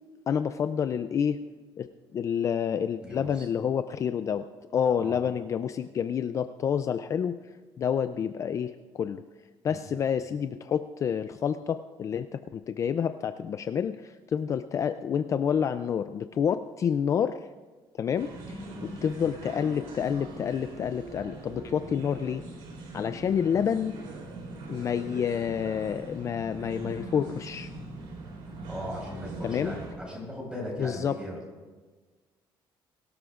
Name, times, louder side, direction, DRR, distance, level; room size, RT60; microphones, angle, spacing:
voice 1, 0.3-1.4 1.8-1.9 2.1-4.4 4.7-7.4 7.8-9.2 9.6-17.4 18.0-18.6 19.0-22.4 22.9-23.9 24.7-27.7 29.4-29.7 30.8-31.2, left 8 dB, 35° left, 10 dB, 0.4 m, -28 dB
voice 2, 3.0-3.4 5.0-5.2 9.7-9.8 18.7-18.9 28.7-31.4, equal, 10° right, -2 dB, 4.9 m, -38 dB
sound 1, 18.2-29.9, right 2 dB, 85° right, 3.3 m, -42 dB
22.0 x 13.0 x 2.5 m, 1.3 s
cardioid pair, 150°, 9 cm